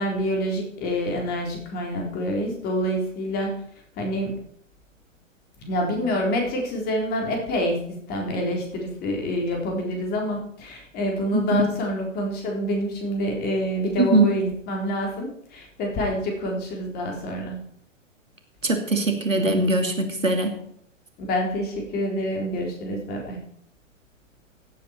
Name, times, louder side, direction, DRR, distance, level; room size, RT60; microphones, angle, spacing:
voice 1, 0.0-3.5 4.0-4.4 5.6-7.8 8.1-17.6 21.2-23.4, equal, 25° left, 1 dB, 3.8 m, -27 dB
voice 2, 18.6-20.5, right 2 dB, 80° right, 5 dB, 2.7 m, -21 dB
16.0 x 8.8 x 4.4 m, 0.69 s
figure-of-eight pair, 115°, 38 cm